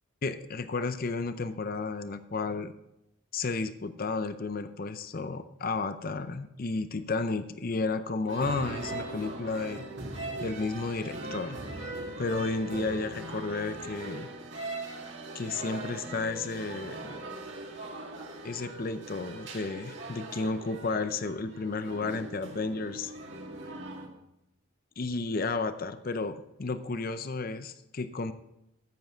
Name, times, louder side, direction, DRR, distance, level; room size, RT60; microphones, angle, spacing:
voice 1, 0.2-2.7 3.3-9.8 10.4-11.6 12.2-14.3 15.3-17.0 18.4-23.1 25.0-28.3, left 3 dB, 40° left, 11 dB, 0.6 m, -32 dB
sound 1, 8.3-24.1, right 2 dB, 55° right, 2.3 m, -40 dB
14.5 x 8.0 x 4.5 m, 0.86 s
head